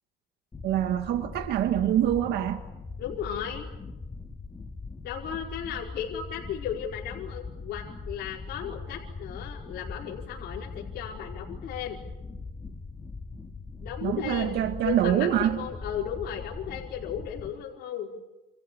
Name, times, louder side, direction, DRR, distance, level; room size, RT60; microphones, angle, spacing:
sound 1, 0.5-17.5, left 3 dB, 20° left, 2.6 m, -41 dB
voice 1, 0.6-2.6 14.0-15.6, right 11 dB, 80° right, 8 dB, 1.7 m, -25 dB
voice 2, 3.0-3.7 5.0-12.0 13.8-18.1, left 9 dB, 75° left, -2 dB, 5.0 m, -35 dB
28.5 x 27.5 x 7.1 m, 0.99 s
cardioid pair, 110°, 17 cm